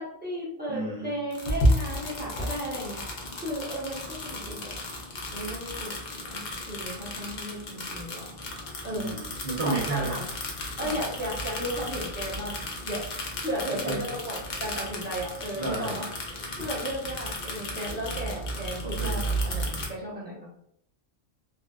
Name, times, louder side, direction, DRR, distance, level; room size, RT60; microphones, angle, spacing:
voice 1, 0.0-3.0 3.4-4.7 5.3-6.4 6.7-8.3 8.8-9.1 9.6-10.2 10.8-12.6 12.8-13.0 13.4-20.5, equal, 10° right, -8 dB, 0.7 m, -35 dB
voice 2, 0.7-1.1 8.9-10.2 10.8-11.0 13.8-14.0 15.6-16.0 18.8-19.2, right 3 dB, 50° right, -4 dB, 0.6 m, -32 dB
sound 1, 1.3-19.9, equal, 55° left, 0.5 m, -33 dB
2.6 x 2.2 x 2.2 m, 0.72 s
omnidirectional pair, 1.3 m